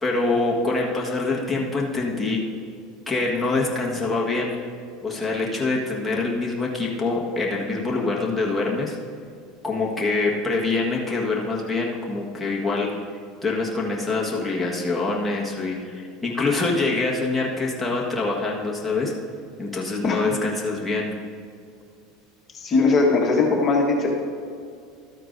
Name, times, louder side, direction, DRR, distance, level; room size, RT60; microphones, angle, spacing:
voice 1, 0.0-2.4 3.1-4.6 5.0-9.0 9.6-13.0 13.4-19.1 19.6-21.1, left 3 dB, 5° left, -5 dB, 1.5 m, -25 dB
voice 2, 22.5-24.1, left 3 dB, 35° left, -1 dB, 1.4 m, -19 dB
13.0 x 9.2 x 2.7 m, 2.4 s
supercardioid pair, 110°, 0 cm